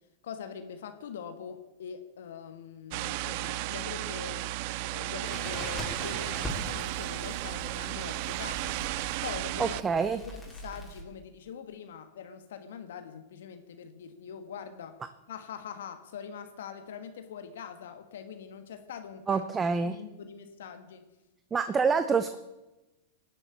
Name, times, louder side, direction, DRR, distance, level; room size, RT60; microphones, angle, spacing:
voice 1, 0.2-8.8 9.2-15.0 15.3-19.4 19.8-21.1, left 7 dB, 70° left, 8 dB, 1.5 m, -43 dB
sound 1, 2.9-9.8, right 18 dB, 55° right, 0.5 m, -34 dB
Crackle, 5.2-11.0, equal, 5° left, 4.6 m, -42 dB
voice 2, 9.6-10.2 19.3-20.0 21.5-22.4, right 5 dB, 20° right, 11 dB, 0.8 m, -26 dB
18.0 x 7.1 x 8.3 m, 1.0 s
hypercardioid pair, 110°, 0 cm